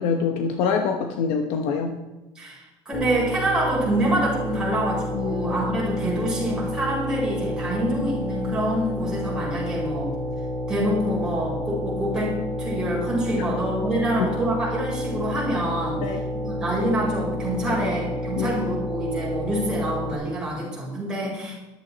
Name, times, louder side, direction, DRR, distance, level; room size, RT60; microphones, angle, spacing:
voice 1, 0.0-2.0 5.1-5.5 16.0-16.2 17.7-17.9 18.4-18.6, left 5 dB, 65° left, 5 dB, 1.1 m, -25 dB
voice 2, 2.3-10.1 10.7-16.1 16.4-21.5, right 1 dB, 5° right, -6 dB, 4.9 m, -26 dB
sound 1, 2.9-20.1, equal, 15° left, 2.0 m, -30 dB
14.0 x 12.0 x 4.1 m, 1.1 s
cardioid pair, 175°, 11 cm